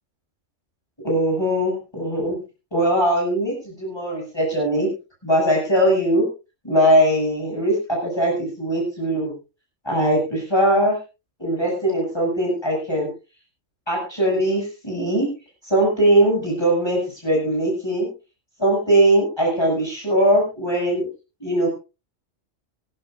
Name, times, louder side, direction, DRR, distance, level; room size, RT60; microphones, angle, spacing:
voice 1, 1.0-2.4 2.7-4.9 5.2-6.3 6.6-9.3 9.8-11.0 11.4-13.1 13.9-15.3 15.7-18.1 18.6-21.1 21.4-21.7, right 1 dB, 20° left, -3 dB, 7.6 m, -20 dB
24.5 x 12.5 x 2.6 m, 0.30 s
omnidirectional pair, 1.3 m